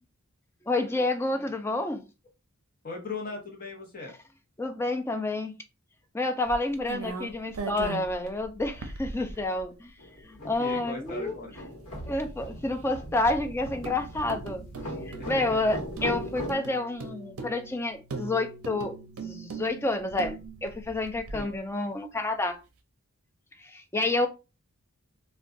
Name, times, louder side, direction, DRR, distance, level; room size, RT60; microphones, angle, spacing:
voice 1, 0.7-2.0 3.4-3.5 4.6-5.5 6.1-9.9 10.2-11.6 12.1-14.7 15.1-19.0 19.2-22.6 23.6-24.3, left 2 dB, 10° left, 0.3 m, -29 dB
voice 2, 2.8-4.1 10.4-11.5 15.2-15.7 21.3-21.5, left 3 dB, 40° left, 0.8 m, -38 dB
sound 1, 6.5-9.6 10.2-10.3 10.5-10.6 13.8-21.6, right 4 dB, 70° right, 0.5 m, -40 dB
sound 2, 10.0-16.5, equal, 80° left, 1.0 m, -39 dB
2.4 x 2.2 x 3.6 m
head